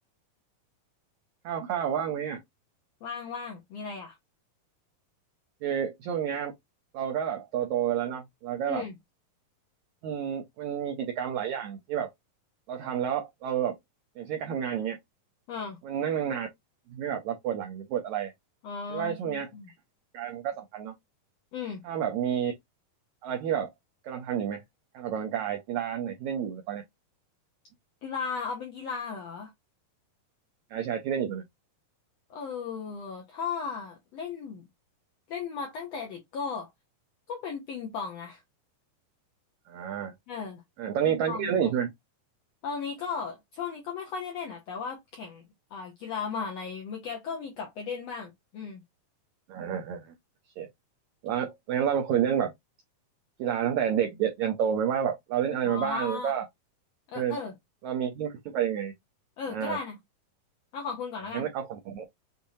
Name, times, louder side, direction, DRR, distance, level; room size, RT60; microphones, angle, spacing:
voice 1, 1.4-2.4 5.6-6.5 6.9-8.8 10.0-12.1 12.7-13.7 14.2-15.0 15.8-16.5 16.9-18.3 18.9-19.5 20.1-20.9 21.8-22.5 23.2-23.7 24.0-24.6 24.9-26.8 30.7-31.4 39.7-40.1 40.8-41.9 49.5-50.1 50.6-50.7 51.2-52.5 53.4-56.5 57.1-57.4 57.8-58.9 59.5-59.8 61.3-62.0, right 9 dB, 80° right, 1.7 m, -29 dB
voice 2, 3.0-4.2 8.7-8.9 15.5-15.8 18.6-19.7 21.5-21.8 28.0-29.5 32.3-34.7 35.3-36.7 37.3-38.4 40.3-40.6 41.0-41.7 42.6-45.4 45.7-48.8 55.6-56.3 57.1-57.5 59.4-60.0 60.7-61.5, left 5 dB, 80° left, 1.5 m, -36 dB
6.8 x 2.7 x 2.7 m
omnidirectional pair, 4.1 m